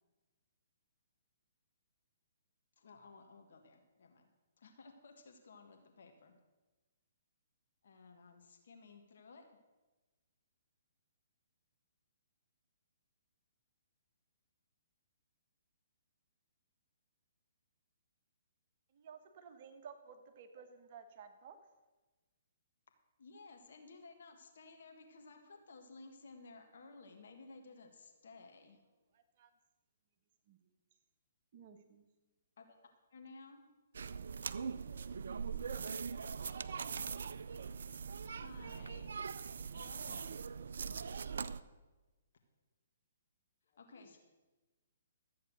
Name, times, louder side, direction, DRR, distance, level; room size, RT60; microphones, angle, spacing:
voice 1, 2.8-4.3 4.6-6.4 7.8-9.6 23.2-28.8 32.6-32.8 33.1-33.6 38.2-39.1 39.7-40.4 43.8-44.2, left 3 dB, 65° left, 4 dB, 1.6 m, -56 dB
voice 2, 18.9-21.6 29.1-29.5 30.5-30.6 31.5-32.1, right 6 dB, 45° right, 6 dB, 1.4 m, -55 dB
sound 1, 33.9-41.6, right 6 dB, 65° right, 0.5 m, -42 dB
voice 3, 36.6-37.0 43.7-44.2, left 3 dB, 45° left, 0 dB, 3.7 m, -65 dB
13.5 x 8.4 x 6.2 m, 1.2 s
figure-of-eight pair, 130°, 0 cm